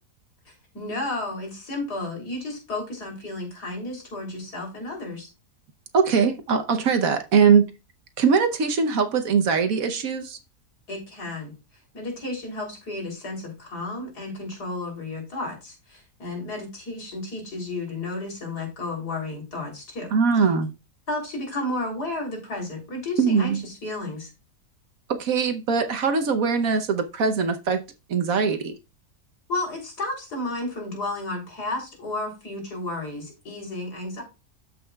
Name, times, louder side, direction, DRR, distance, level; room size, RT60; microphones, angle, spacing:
voice 1, 0.7-5.3 10.9-11.5 11.9-20.1 21.1-24.3 29.5-34.2, left 2 dB, 75° left, 3.8 m, -32 dB
voice 2, 5.9-7.7 8.2-10.4 20.1-20.7 23.2-23.6 25.1-27.8 28.1-28.7, right 5 dB, 60° right, 1.2 m, -21 dB
13.0 x 5.5 x 2.3 m
omnidirectional pair, 1.7 m